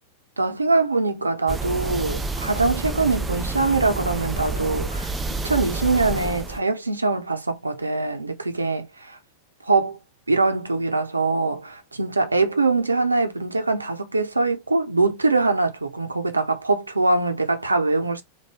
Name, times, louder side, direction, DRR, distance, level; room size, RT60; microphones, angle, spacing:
voice 1, 0.4-5.1 5.4-8.9 9.6-10.0 10.3-18.2, right 3 dB, 80° right, 0.7 m, -23 dB
sound 1, 1.5-6.6, right 3 dB, 10° right, 0.4 m, -29 dB
3.4 x 2.2 x 3.2 m
figure-of-eight pair, 90°, 0 cm